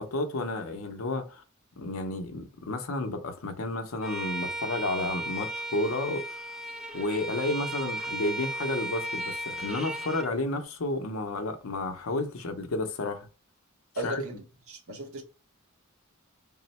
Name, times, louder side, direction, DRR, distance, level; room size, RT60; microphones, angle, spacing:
voice 1, 0.0-1.4 1.8-6.6 6.9-13.3 14.0-14.2, left 2 dB, 70° left, 0.6 m, -31 dB
Bowed string instrument, 4.0-10.3, right 1 dB, ahead, 0.5 m, -35 dB
voice 2, 13.9-15.2, right 1 dB, 80° right, 1.0 m, -37 dB
3.7 x 2.0 x 4.1 m
head